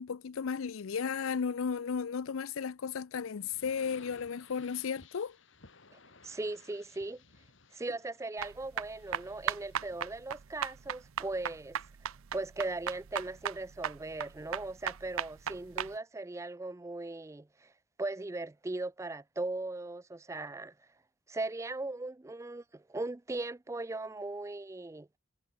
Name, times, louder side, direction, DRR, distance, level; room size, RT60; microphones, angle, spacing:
voice 1, 0.0-5.4, left 6 dB, 80° left, 0.5 m, -34 dB
sound 1, 3.4-10.1, left 4 dB, 65° left, 2.8 m, -58 dB
voice 2, 6.2-7.2 7.7-11.8 12.3-17.7 18.0-20.7 21.3-25.1, right 2 dB, 15° right, 0.3 m, -38 dB
sound 2, 8.4-15.9, right 8 dB, 85° right, 0.6 m, -37 dB
head